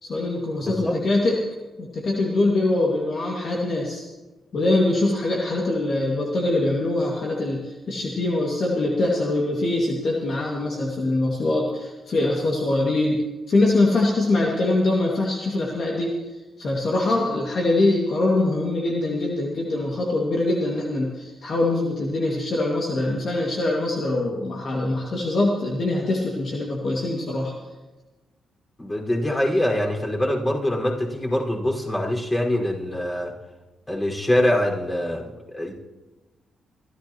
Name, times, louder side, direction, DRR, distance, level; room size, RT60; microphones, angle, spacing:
voice 1, 0.0-1.4 1.8-4.0 4.5-16.1 16.6-27.5, left 2 dB, 55° left, -2 dB, 2.2 m, -23 dB
voice 2, 0.6-1.0 28.8-33.3 33.9-35.7, left 1 dB, 20° left, -1 dB, 5.2 m, -24 dB
25.0 x 14.0 x 3.1 m, 1.1 s
supercardioid pair, 50°, 0 cm